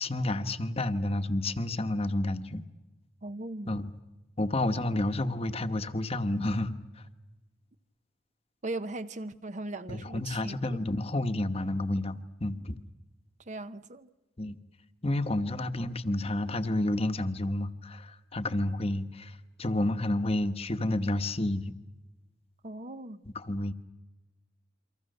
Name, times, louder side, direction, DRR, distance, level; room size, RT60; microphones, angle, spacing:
voice 1, 0.0-2.6 3.6-3.9 4.4-7.0 9.9-12.8 14.4-14.6 15.0-21.7 23.3-23.7, left 1 dB, 30° left, 1.1 m, -30 dB
voice 2, 3.2-3.8 8.6-10.8 13.5-14.1 22.6-23.2, right 2 dB, 40° right, 0.8 m, -38 dB
29.5 x 24.5 x 6.7 m
head